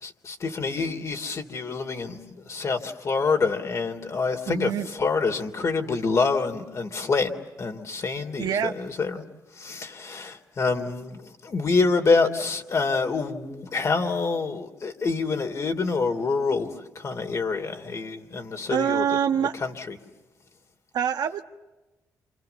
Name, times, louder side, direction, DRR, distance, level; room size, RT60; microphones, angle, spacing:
voice 1, 0.0-2.2 2.5-7.3 7.6-9.2 9.6-19.0 19.6-20.0, left 4 dB, 50° left, 5 dB, 3.3 m, -26 dB
voice 2, 4.5-4.9 8.4-8.8 18.7-19.5 20.9-21.4, right 9 dB, 75° right, 7 dB, 1.3 m, -25 dB
28.5 x 28.5 x 7.0 m, 1.1 s
cardioid pair, 90°, 7 cm